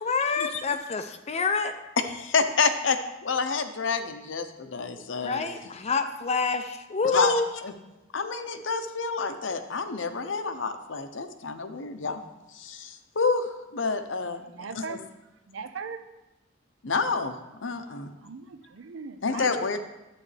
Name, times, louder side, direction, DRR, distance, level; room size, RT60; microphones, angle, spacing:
voice 1, 0.0-1.7 5.2-7.5, left 4 dB, 35° left, 8 dB, 0.4 m, -27 dB
voice 2, 2.0-5.4 7.1-7.7 8.1-12.2 12.5-14.4 14.8-15.0 16.8-17.4 17.6-18.1 19.2-19.8, left 4 dB, 70° left, 8 dB, 0.8 m, -28 dB
voice 3, 14.5-15.1 15.5-16.0 17.8-19.5, right 5 dB, 75° right, 10 dB, 0.6 m, -40 dB
11.5 x 8.3 x 3.3 m, 0.99 s
head